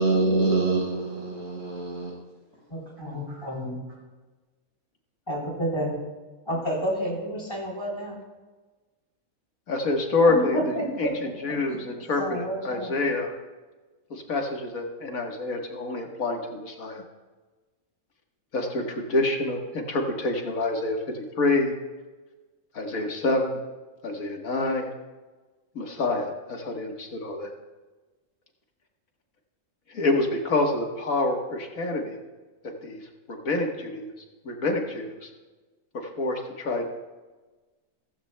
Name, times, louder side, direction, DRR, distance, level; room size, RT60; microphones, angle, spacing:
voice 1, 0.0-2.1, right 3 dB, 75° right, -4 dB, 5.3 m, -25 dB
voice 2, 2.7-3.8 5.3-6.0 6.5-8.2 10.3-11.1 11.7-12.9, equal, 20° left, -3 dB, 3.8 m, -30 dB
voice 3, 9.7-13.3 14.1-17.0 18.5-21.7 22.7-23.6 24.0-24.9 25.8-27.5 29.9-32.2 32.6-34.1 34.4-35.3 36.2-36.9, left 2 dB, 90° left, 2 dB, 1.9 m, -27 dB
16.0 x 15.0 x 2.3 m, 1.3 s
omnidirectional pair, 1.4 m